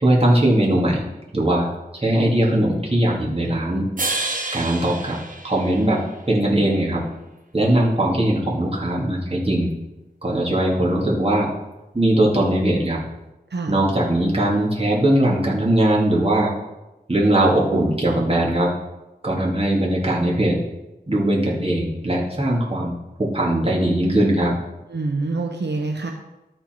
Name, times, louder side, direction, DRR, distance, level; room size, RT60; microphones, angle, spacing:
voice 1, 0.0-1.0 1.3-1.7 1.9-3.8 4.5-5.2 5.4-6.0 6.3-7.0 7.5-9.7 10.2-11.5 11.9-13.0 13.7-16.5 17.1-18.7 19.2-20.6 21.1-22.9 23.2-24.5, right 1 dB, 35° right, -5 dB, 2.6 m, -20 dB
sound 1, 4.0-6.3, right 2 dB, 50° right, 1.2 m, -29 dB
voice 2, 24.9-26.1, right 3 dB, 85° right, 2 dB, 0.9 m, -26 dB
13.0 x 4.5 x 4.6 m, 1.0 s
wide cardioid pair, 45°, 17 cm